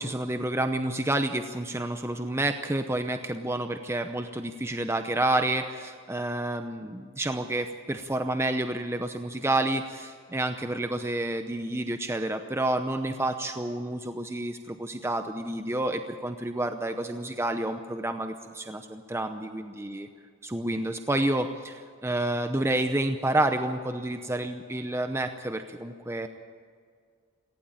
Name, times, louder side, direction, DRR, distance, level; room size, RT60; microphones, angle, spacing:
voice 1, 0.0-20.1 20.4-26.3, right 1 dB, 10° right, 7 dB, 0.7 m, -29 dB
18.0 x 16.0 x 9.0 m, 2.1 s
head